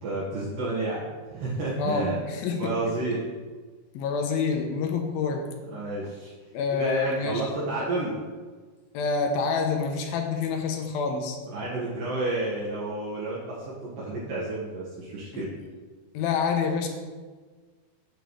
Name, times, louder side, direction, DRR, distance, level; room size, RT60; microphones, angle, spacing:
voice 1, 0.0-2.2 2.5-3.2 5.6-6.3 6.7-8.2 11.5-15.5, right 2 dB, 65° right, -9 dB, 3.1 m, -30 dB
voice 2, 1.8-2.7 3.9-5.4 6.0-6.1 6.5-7.5 8.9-11.4 15.3-15.5 16.1-16.9, left 5 dB, 80° left, 3 dB, 2.5 m, -27 dB
8.0 x 7.9 x 3.2 m, 1.4 s
omnidirectional pair, 4.4 m